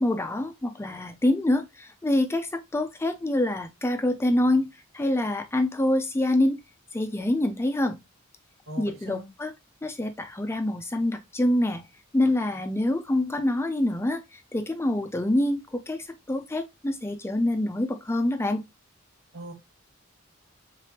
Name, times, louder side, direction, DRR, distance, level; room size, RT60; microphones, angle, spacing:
voice 1, 0.0-4.7 4.9-6.6 6.9-8.0 8.8-9.5 9.8-11.8 12.1-14.2 14.5-18.6, left 1 dB, 10° left, 0.4 m, -26 dB
voice 2, 8.7-9.3 19.3-19.5, right 1 dB, 75° right, 1.6 m, -39 dB
3.7 x 3.4 x 2.8 m
head